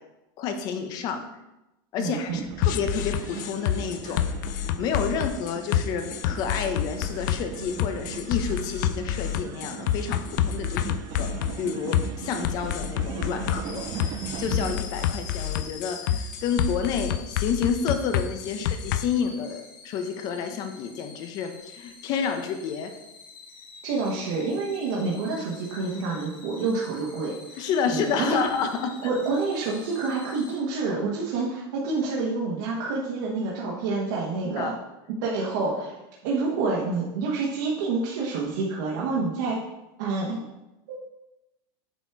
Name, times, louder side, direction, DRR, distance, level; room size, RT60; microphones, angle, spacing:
voice 1, 0.4-1.2 1.9-4.2 4.8-11.3 11.6-12.0 12.2-22.9 27.6-29.1 34.6-34.7, left 6 dB, 35° left, 6 dB, 0.8 m, -30 dB
voice 2, 2.0-2.4 4.0-4.1 10.8-11.3 13.9-14.0 18.5-18.6 23.8-28.4 29.0-34.7 35.2-35.9 36.2-39.6 40.0-40.4 40.9-41.0, right 4 dB, 60° right, -5 dB, 1.5 m, -28 dB
sound 1, 2.3-14.7, right 9 dB, 30° right, 0.4 m, -39 dB
sound 2, 2.6-19.0, left 10 dB, 60° left, 0.4 m, -28 dB
sound 3, 13.6-30.6, left 4 dB, 75° left, 1.7 m, -46 dB
8.1 x 4.3 x 4.6 m, 0.96 s
supercardioid pair, 170°, 12 cm